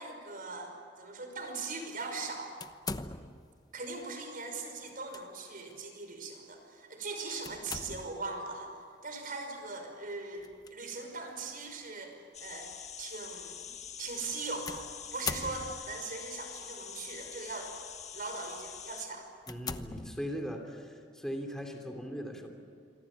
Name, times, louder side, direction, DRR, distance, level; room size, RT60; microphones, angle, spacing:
voice 1, 0.0-2.5 3.7-8.8 9.0-12.7 13.0-13.7 14.0-14.8 15.1-17.7 18.1-19.3, right 3 dB, 50° right, 4 dB, 5.6 m, -40 dB
sound 1, 2.6-3.6 4.9-5.2 5.7-5.8 7.4-8.3 10.4-10.7 11.5-11.6 14.7-16.1 17.0-17.4 18.0-18.2 18.7-18.8 19.4-20.6, left 4 dB, 20° left, 1.0 m, -41 dB
sound 2, 12.3-19.1, left 8 dB, 40° left, 1.7 m, -45 dB
voice 2, 19.5-22.5, equal, 5° left, 3 dB, 3.1 m, -39 dB
27.0 x 24.5 x 8.8 m, 2.1 s
head